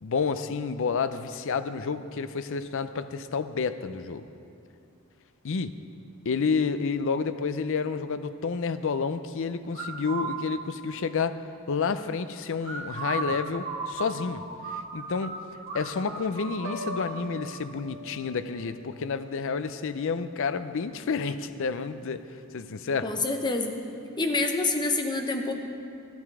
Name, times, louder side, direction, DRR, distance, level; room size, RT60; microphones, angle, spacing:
voice 1, 0.0-4.2 5.4-5.7 6.2-11.4 11.7-14.4 14.7-15.4 15.7-22.2 22.5-23.1, left 5 dB, 60° left, 11 dB, 0.5 m, -30 dB
sound 1, 9.7-10.3 12.6-15.3 15.7-17.0, right 4 dB, 55° right, 3.3 m, -34 dB
Piano, 16.6-20.6 21.0-21.4, equal, 85° right, 1.2 m, -44 dB
voice 2, 23.0-23.8 24.2-25.5, left 3 dB, 20° left, 4 dB, 0.8 m, -27 dB
12.5 x 10.5 x 4.8 m, 2.5 s
head